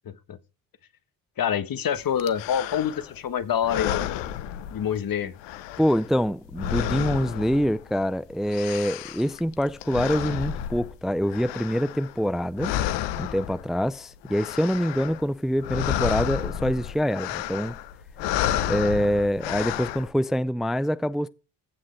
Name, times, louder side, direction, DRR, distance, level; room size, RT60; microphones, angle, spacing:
voice 1, 0.0-0.4 1.4-4.1 4.7-5.3, left 8 dB, 55° left, 1.5 m, -26 dB
sound 1, 2.2-3.2 3.6-5.1 5.4-8.1 8.3-12.3 12.6-13.8 14.2-15.3 15.5-20.1, left 11 dB, 90° left, 1.0 m, -31 dB
voice 2, 5.8-12.7 13.2-17.8 18.7-21.3, equal, ahead, 0.5 m, -25 dB
15.0 x 7.4 x 3.3 m
supercardioid pair, 70°, 41 cm